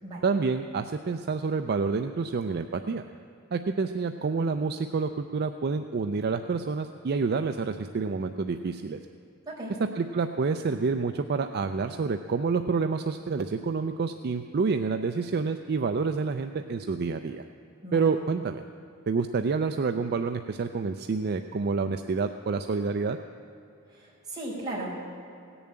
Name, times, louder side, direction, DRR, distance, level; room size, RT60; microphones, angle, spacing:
voice 1, 0.2-3.0 3.5-9.0 10.0-17.4 17.9-18.6 19.1-23.2, right 4 dB, 45° right, 8 dB, 0.4 m, -28 dB
voice 2, 23.9-25.1, right 1 dB, 20° right, -7 dB, 4.4 m, -36 dB
17.0 x 7.0 x 8.8 m, 2.7 s
head